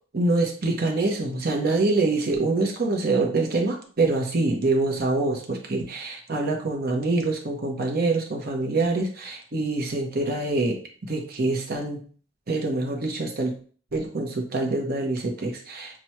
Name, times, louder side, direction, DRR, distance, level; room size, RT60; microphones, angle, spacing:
voice 1, 0.1-12.0 12.5-13.5 13.9-16.0, right 2 dB, 55° right, 1 dB, 0.8 m, -25 dB
6.0 x 2.1 x 2.9 m, 0.43 s
head